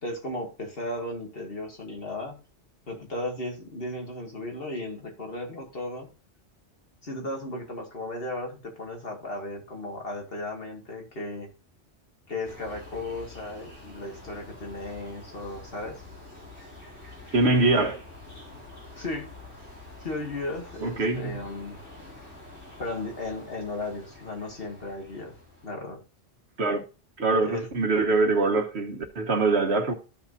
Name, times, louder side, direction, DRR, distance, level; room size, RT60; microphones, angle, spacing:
voice 1, 0.0-2.4 2.9-6.1 7.0-11.5 12.3-15.9 18.9-19.3 20.0-21.8 22.8-25.4 25.6-26.0 27.4-27.7, left 2 dB, 60° left, 2.4 m, -35 dB
sound 1, 12.4-25.7, left 2 dB, 75° left, 4.5 m, -47 dB
voice 2, 17.3-18.0 20.8-21.4 26.6-26.8 27.2-29.9, right 3 dB, 70° right, 1.5 m, -23 dB
14.5 x 5.9 x 2.7 m
omnidirectional pair, 1.1 m